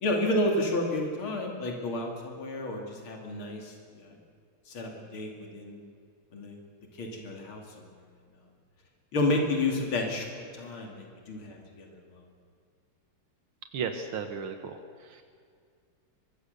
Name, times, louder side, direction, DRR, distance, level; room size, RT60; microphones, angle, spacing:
voice 1, 0.0-4.2 4.7-5.8 6.3-6.6 7.0-7.9 9.1-12.2, left 2 dB, 75° left, 1 dB, 3.6 m, -31 dB
voice 2, 13.7-15.2, right 6 dB, 80° right, 6 dB, 2.1 m, -35 dB
24.0 x 22.0 x 6.8 m, 2.2 s
omnidirectional pair, 2.3 m